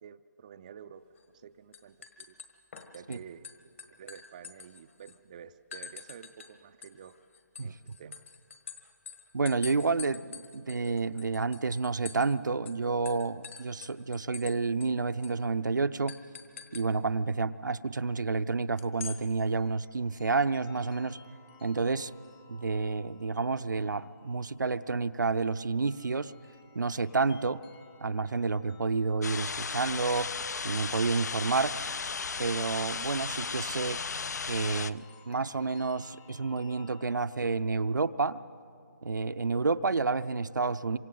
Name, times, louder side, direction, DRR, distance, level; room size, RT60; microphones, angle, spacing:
voice 1, 0.0-2.4 2.9-7.2 7.6-8.2, right 8 dB, 25° right, 9 dB, 0.4 m, -50 dB
sound 1, 1.2-1.4 1.7-3.2 3.4-5.2 5.7-6.5 6.8-12.4 12.7-12.8 13.1-14.5 14.8-14.9 15.2-15.4 16.1-16.9 18.8-19.2, left 6 dB, 40° left, 1.6 m, -45 dB
voice 2, 9.3-16.1 16.7-21.2 21.6-22.1 22.5-26.3 26.7-27.6 28.0-30.3 30.6-31.8 32.4-34.0 34.5-38.4 39.0-41.0, right 4 dB, 80° right, 10 dB, 0.7 m, -30 dB
sound 2, 18.7-37.2, left 5 dB, 15° left, 0.7 m, -59 dB
sound 3, 29.2-34.9, left 5 dB, 60° left, 0.5 m, -35 dB
27.5 x 25.0 x 3.9 m, 2.6 s
figure-of-eight pair, 160°, 10 cm